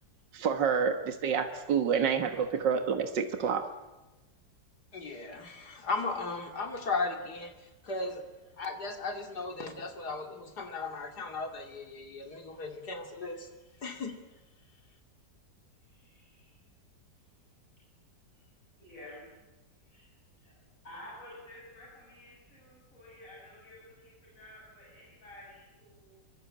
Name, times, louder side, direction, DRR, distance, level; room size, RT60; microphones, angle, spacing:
voice 1, 0.3-3.7, right 6 dB, 80° right, 7 dB, 2.1 m, -28 dB
voice 2, 4.9-7.5 7.8-8.2 8.6-13.5 13.8-14.1, left 3 dB, 65° left, 5 dB, 3.1 m, -36 dB
voice 3, 15.9-16.5 18.8-19.3 19.9-20.1 20.4-20.6 20.8-26.2, left 1 dB, 45° left, -5 dB, 7.9 m, -51 dB
24.5 x 24.0 x 8.7 m, 1.1 s
omnidirectional pair, 1.9 m